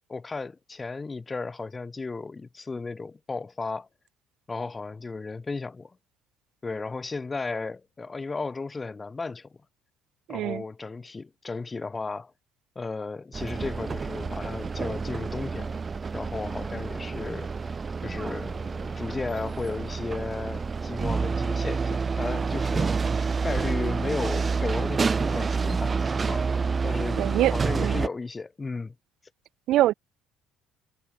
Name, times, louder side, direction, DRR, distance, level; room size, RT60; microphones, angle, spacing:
voice 1, 0.1-3.9 4.5-6.0 6.6-9.6 10.3-12.3 12.8-15.8 16.1-17.7 18.0-26.5 26.8-27.2 27.5-29.0, left 3 dB, 25° left, 7.0 m, -34 dB
voice 2, 10.3-10.6 27.2-28.0 29.7-29.9, right 14 dB, 65° right, 0.7 m, -24 dB
sound 1, 13.3-28.1, right 5 dB, 30° right, 2.3 m, -28 dB
hypercardioid pair, 65°, 0 cm